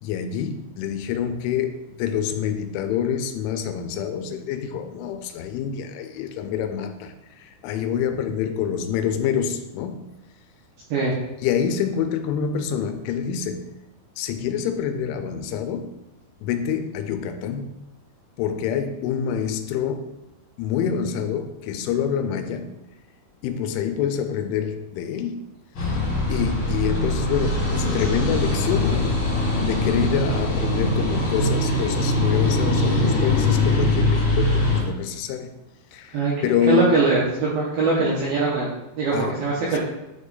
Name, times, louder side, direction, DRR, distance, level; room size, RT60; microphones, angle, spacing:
voice 1, 0.0-10.1 11.4-13.7 14.2-16.0 16.4-17.7 18.4-20.1 20.6-22.7 23.4-25.5 25.8-25.9 26.3-29.2 29.6-35.5 35.9-37.0 39.1-39.4 39.7-39.8, left 8 dB, 85° left, 2.9 m, -26 dB
sound 1, 25.7-34.8, left 2 dB, 60° left, 1.4 m, -22 dB
voice 2, 36.7-39.8, right 3 dB, 80° right, 2.2 m, -22 dB
8.9 x 3.1 x 3.9 m
omnidirectional pair, 5.4 m